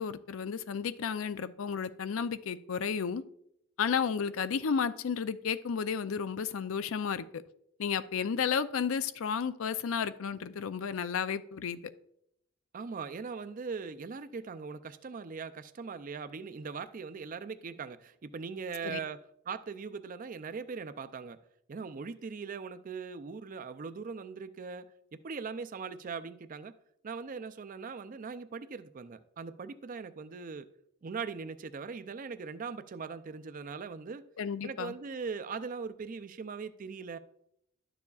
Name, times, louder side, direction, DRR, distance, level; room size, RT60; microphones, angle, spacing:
voice 1, 0.0-3.2 3.8-7.4 7.8-11.8 18.8-19.0 34.4-34.9, left 6 dB, 75° left, 0.4 m, -32 dB
voice 2, 12.7-19.2 19.5-21.4 21.7-24.8 25.1-26.8 27.0-30.7 31.0-34.2 34.6-37.2, right 5 dB, 40° right, 0.4 m, -40 dB
11.5 x 7.0 x 2.4 m
head